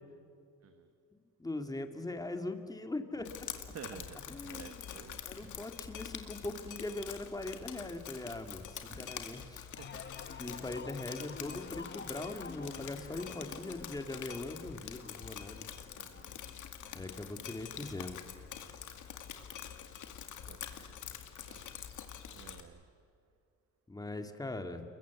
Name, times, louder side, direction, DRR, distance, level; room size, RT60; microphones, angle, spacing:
voice 1, 1.4-3.5 4.3-5.0 5.2-9.7 10.4-15.7 16.9-18.2 23.9-24.8, left 2 dB, 10° left, 6 dB, 2.1 m, -41 dB
Drip, 3.2-22.6, left 9 dB, 70° left, 2.3 m, -46 dB
voice 2, 3.7-5.7 9.7-10.1 15.9-16.4 16.9-17.2 20.4-21.0 21.3-21.7 22.3-22.9, right 7 dB, 50° right, 9 dB, 1.3 m, -52 dB
Door, 5.4-6.4 7.0-7.5 8.9-10.8, right 3 dB, 25° right, 4.6 m, -61 dB
sound 1, 9.8-19.3 19.7-20.2, left 5 dB, 35° left, 1.4 m, -51 dB
29.5 x 22.5 x 8.3 m, 2.4 s
cardioid pair, 130°, 31 cm